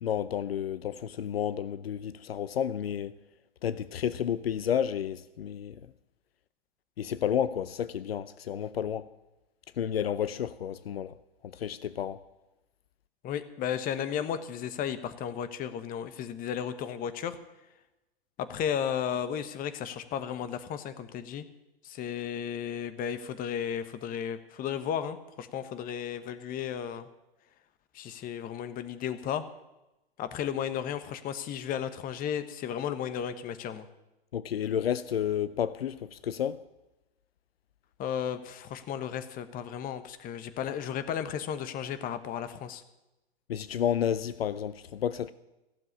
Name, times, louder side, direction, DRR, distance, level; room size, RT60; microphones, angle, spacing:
voice 1, 0.0-3.2 3.6-5.8 7.0-9.1 9.8-11.2 11.4-12.2 34.3-36.6 43.5-45.3, left 9 dB, 70° left, 0.7 m, -31 dB
voice 2, 13.2-17.4 18.4-21.4 21.8-27.1 27.9-29.5 30.2-33.9 38.0-42.8, left 9 dB, 30° left, 1.2 m, -34 dB
15.5 x 7.5 x 9.9 m
figure-of-eight pair, 110°, 31 cm